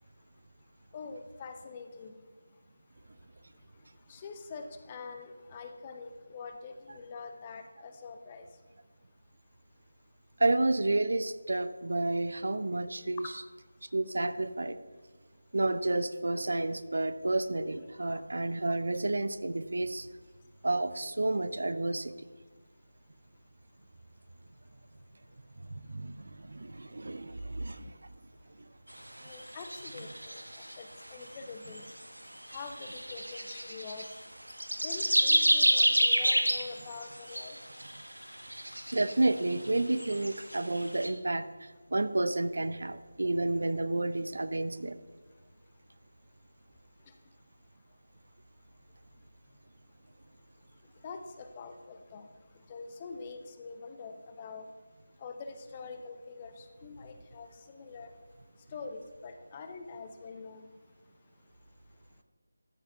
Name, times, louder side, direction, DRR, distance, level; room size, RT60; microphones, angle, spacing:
voice 1, 0.9-2.1 4.1-8.5 18.0-18.2 29.2-30.4 30.8-31.9 32.5-34.1 34.8-37.6 51.0-52.3 52.7-54.6 55.2-58.1 58.7-60.7, left 4 dB, 20° left, 6 dB, 0.8 m, -45 dB
voice 2, 10.4-13.2 13.9-14.8 15.5-20.1 20.6-22.1 25.9-27.9 38.9-41.4 41.9-44.9, right 2 dB, 60° right, 12 dB, 0.7 m, -30 dB
sound 1, 29.3-31.0 31.6-32.0 32.5-34.1 34.5-41.1, equal, 90° right, 1.4 m, -29 dB
13.5 x 6.7 x 5.6 m, 1.4 s
figure-of-eight pair, 160°, 0 cm